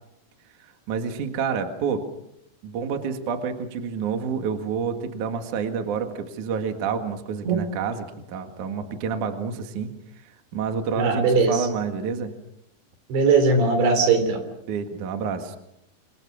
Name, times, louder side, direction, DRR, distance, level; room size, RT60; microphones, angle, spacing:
voice 1, 0.9-2.1 2.6-9.9 10.5-12.3 14.7-15.6, right 6 dB, 55° right, 6 dB, 2.9 m, -28 dB
voice 2, 11.0-11.7 13.1-14.4, right 4 dB, 85° right, 8 dB, 5.8 m, -19 dB
27.5 x 25.0 x 6.3 m, 0.78 s
omnidirectional pair, 5.0 m